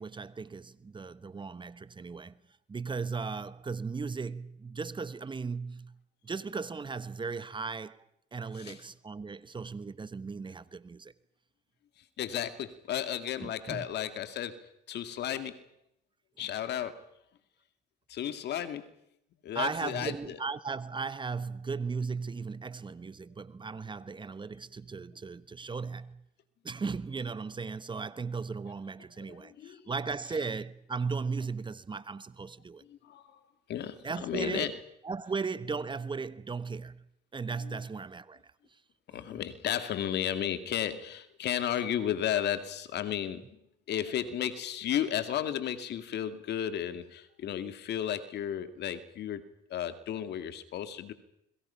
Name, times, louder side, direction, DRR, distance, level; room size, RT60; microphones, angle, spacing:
voice 1, 0.0-2.4 2.7-11.1 13.4-13.9 19.5-26.2 26.6-32.8 34.0-34.7 35.0-37.1 37.3-38.8 39.1-39.4, right 4 dB, 25° right, 1.1 m, -37 dB
voice 2, 12.0-15.7 16.4-17.1 18.1-18.9 19.4-20.4 29.2-29.9 32.9-33.4 33.7-34.8 37.6-37.8 39.1-43.6 43.9-51.1, left 10 dB, 70° left, 2.2 m, -34 dB
29.5 x 22.5 x 5.8 m
cardioid pair, 90°, 18 cm